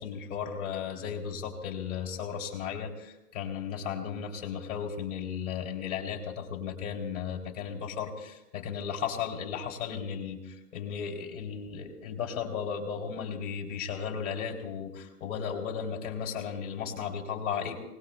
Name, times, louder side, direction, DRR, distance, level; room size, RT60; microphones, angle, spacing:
voice 1, 0.0-17.8, left 7 dB, 50° left, 1 dB, 3.3 m, -35 dB
27.5 x 19.5 x 2.2 m, 0.97 s
hypercardioid pair, 160°, 47 cm